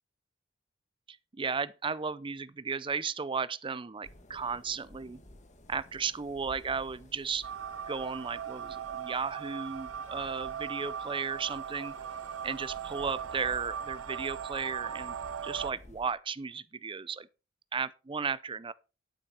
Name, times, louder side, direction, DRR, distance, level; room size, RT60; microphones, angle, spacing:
voice 1, 1.3-5.2 5.7-7.5 7.9-11.9 12.4-15.2 15.4-17.3 17.7-18.7, right 5 dB, 25° right, 0.5 m, -35 dB
sound 1, 4.0-16.1, left 1 dB, 40° left, 1.9 m, -54 dB
sound 2, 7.4-15.7, right 8 dB, 90° right, 0.6 m, -39 dB
10.0 x 8.8 x 4.3 m
head